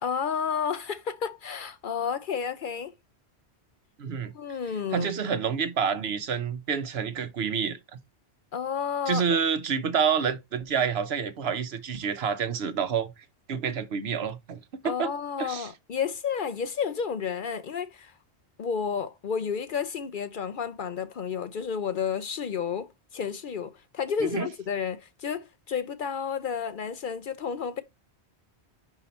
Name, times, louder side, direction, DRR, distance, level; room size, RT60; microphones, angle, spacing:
voice 1, 0.0-2.9 4.3-5.1 8.5-9.2 14.8-18.1 18.6-27.8, left 7 dB, 55° left, 0.7 m, -31 dB
voice 2, 4.0-4.3 4.9-7.8 9.1-13.1 13.5-15.1 15.4-15.7 24.2-24.5, right 6 dB, 70° right, 1.0 m, -28 dB
5.4 x 4.8 x 4.2 m
omnidirectional pair, 1.1 m